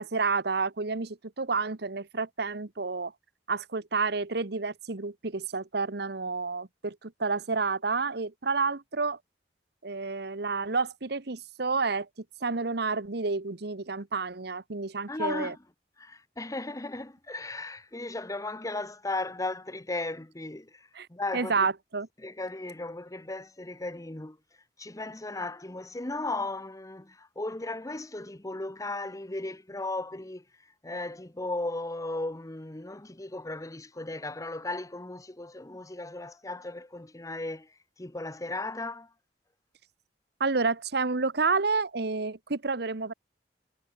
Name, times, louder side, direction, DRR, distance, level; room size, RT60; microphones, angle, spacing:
voice 1, 0.0-3.1 3.5-9.2 9.8-12.1 12.4-15.5 20.9-21.1 21.3-22.1 40.4-43.1, right 4 dB, 65° right, 1.2 m, -30 dB
voice 2, 15.1-15.6 16.0-21.7 22.2-24.4 24.8-30.4 30.8-39.1, left 2 dB, 20° left, 1.1 m, -36 dB
head